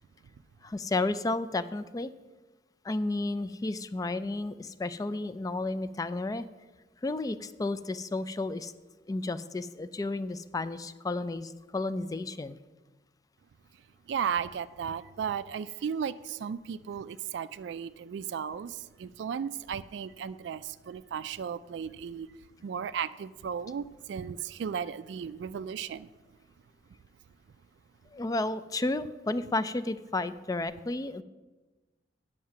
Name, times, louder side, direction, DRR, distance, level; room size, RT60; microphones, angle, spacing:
voice 1, 0.6-2.1 2.8-6.5 7.0-8.7 9.1-12.6 28.1-31.2, left 2 dB, 20° left, 14 dB, 0.3 m, -32 dB
voice 2, 14.1-18.7 19.0-20.6 20.9-22.3 22.6-26.1, right 7 dB, 70° right, 14 dB, 0.3 m, -35 dB
9.3 x 6.4 x 5.8 m, 1.2 s
head